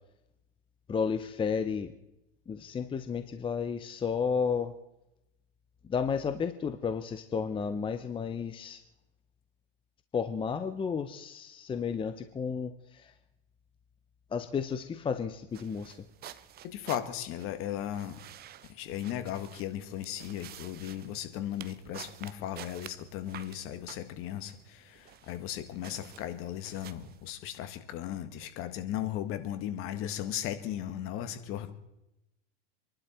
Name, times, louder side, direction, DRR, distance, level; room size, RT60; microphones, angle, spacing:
voice 1, 0.9-1.9 2.5-4.7 5.9-8.8 10.1-13.1 14.3-16.0, left 6 dB, 15° left, 9 dB, 0.8 m, -32 dB
sound 1, 15.5-27.3, right 11 dB, 35° right, 0.8 m, -51 dB
voice 2, 16.6-18.3 18.7-31.7, left 11 dB, 50° left, 10 dB, 1.8 m, -36 dB
27.5 x 11.5 x 4.4 m, 0.89 s
supercardioid pair, 120°, 29 cm